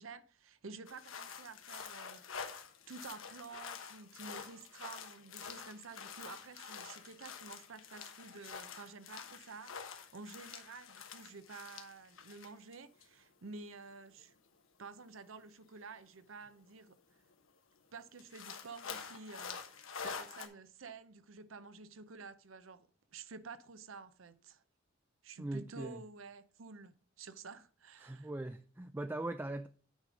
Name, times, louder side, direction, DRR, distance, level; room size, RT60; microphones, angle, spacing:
voice 1, 0.0-14.4 14.8-17.0 17.9-24.6 25.2-28.3, right 4 dB, 80° right, 0.7 m, -51 dB
sound 1, 0.9-12.8 13.0-13.1 14.2-14.3 16.5-16.6 16.9-17.0 17.3-17.4 18.2-20.5, left 6 dB, 85° left, 1.2 m, -47 dB
voice 2, 25.4-26.0 28.0-29.7, right 2 dB, 10° right, 0.3 m, -40 dB
9.1 x 5.0 x 5.1 m
head